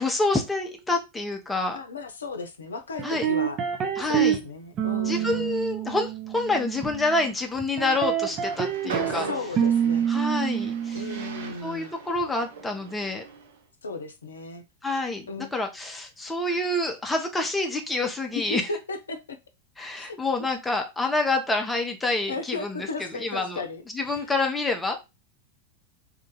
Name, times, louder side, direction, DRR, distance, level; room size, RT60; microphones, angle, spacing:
voice 1, 0.0-1.8 3.0-3.3 4.0-4.4 5.1-9.3 10.1-11.0 11.6-13.2 14.8-18.7 19.8-22.9 23.1-23.6 23.9-25.0, left 2 dB, 10° left, 0.8 m, -27 dB
voice 2, 1.7-3.6 4.1-5.5 8.8-10.1 10.9-11.9 13.8-14.6 15.3-15.5 18.3-19.4 20.0-20.2 22.3-23.8 24.1-24.3, left 3 dB, 70° left, 0.6 m, -35 dB
sound 1, 3.0-4.4 4.8-7.3 7.8-9.2 9.6-11.5, right 9 dB, 30° right, 0.8 m, -27 dB
Train, 8.3-13.5, right 4 dB, 60° right, 0.7 m, -38 dB
2.9 x 2.5 x 3.8 m
figure-of-eight pair, 90°, 0 cm